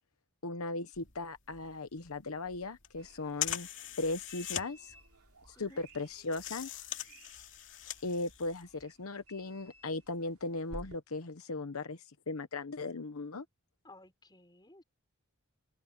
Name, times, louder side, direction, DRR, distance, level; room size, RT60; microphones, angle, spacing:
voice 1, 0.4-3.7 4.0-4.9 5.5-6.8 8.0-13.4, left 2 dB, 75° left, 1.0 m, -38 dB
sound 1, 0.9-8.8, left 11 dB, 55° left, 2.7 m, -42 dB
sound 2, 3.0-11.0, right 1 dB, 85° right, 3.0 m, -55 dB
voice 2, 13.8-14.8, left 2 dB, 20° left, 6.3 m, -56 dB
open air
head